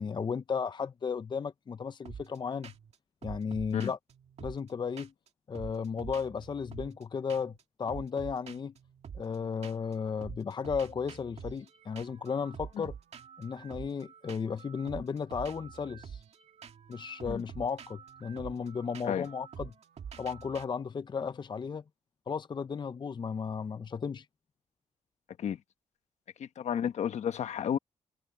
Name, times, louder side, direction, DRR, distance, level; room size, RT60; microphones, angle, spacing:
voice 1, 0.0-2.7 3.2-4.0 4.4-5.1 5.5-7.5 7.8-8.7 9.1-12.9 13.4-16.2 16.9-19.7 20.2-21.8 22.3-24.3, left 6 dB, 40° left, 0.6 m, -34 dB
sound 1, 2.1-2.4 2.6-3.0 3.2-5.3 5.5-7.0 7.3-7.6 7.9-9.9 10.2-20.6, right 7 dB, 65° right, 2.1 m, -47 dB
voice 2, 26.4-27.8, left 9 dB, 75° left, 1.2 m, -31 dB
cardioid pair, 75°, 12 cm